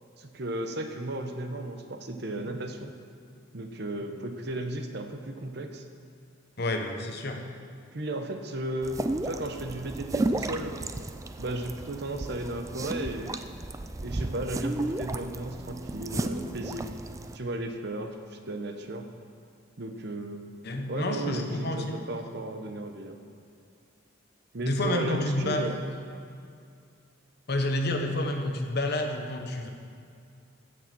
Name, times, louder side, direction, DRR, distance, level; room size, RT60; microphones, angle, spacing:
voice 1, 0.2-2.9 3.5-5.8 7.9-10.8 11.4-13.3 14.0-17.0 17.3-19.1 19.8-20.5 20.9-23.2 24.5-25.8 28.0-28.1, right 1 dB, 55° right, 6 dB, 1.0 m, -35 dB
voice 2, 6.6-7.4 20.6-22.0 24.6-25.7 27.5-29.7, left 1 dB, 55° left, 4 dB, 1.1 m, -29 dB
sound 1, 8.8-17.4, right 2 dB, 15° right, 0.3 m, -33 dB
15.0 x 6.6 x 6.1 m, 2.4 s
head